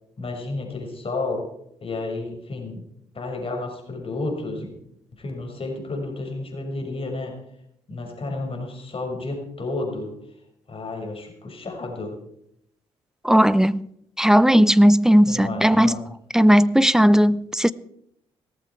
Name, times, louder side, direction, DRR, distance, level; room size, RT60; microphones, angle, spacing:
voice 1, 0.2-1.4 1.8-2.8 3.1-4.7 5.2-7.3 7.9-10.1 10.7-12.1 15.3-16.0, left 2 dB, 40° left, 5.8 m, -31 dB
voice 2, 13.2-13.8 14.2-16.0 16.3-17.7, equal, 5° right, 0.7 m, -16 dB
18.0 x 14.5 x 4.6 m
hypercardioid pair, 45°, 14 cm